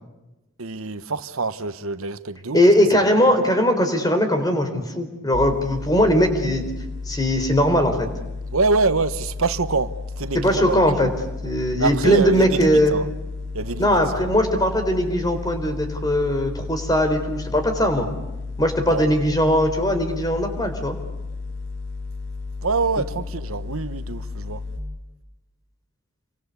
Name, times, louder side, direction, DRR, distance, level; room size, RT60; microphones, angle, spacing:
voice 1, 0.6-2.6 3.2-3.3 8.5-10.8 11.8-13.1 13.5-14.3 18.9-19.1 22.6-24.7, right 3 dB, 80° right, 1.1 m, -25 dB
voice 2, 2.5-6.6 7.0-8.1 10.3-11.1 11.4-12.9 13.8-18.1 18.6-21.0, equal, 20° left, 3.8 m, -20 dB
sound 1, 5.3-24.8, left 3 dB, 60° left, 4.8 m, -33 dB
28.5 x 24.0 x 8.3 m
head